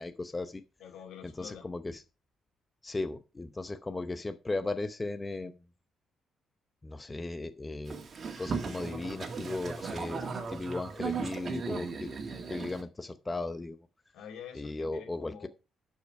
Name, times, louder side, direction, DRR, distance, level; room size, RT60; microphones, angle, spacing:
voice 1, 0.0-0.6 1.4-2.0 2.8-5.6 6.8-8.0 8.4-10.2 10.5-12.1 12.5-13.8 14.5-15.5, left 2 dB, 20° left, 0.8 m, -36 dB
voice 2, 0.8-1.7 14.1-15.5, left 8 dB, 80° left, 2.5 m, -47 dB
Boat Water vehicle, 7.9-12.8, right 5 dB, 45° right, 2.0 m, -37 dB
11.5 x 5.6 x 4.7 m
cardioid pair, 90°, 0 cm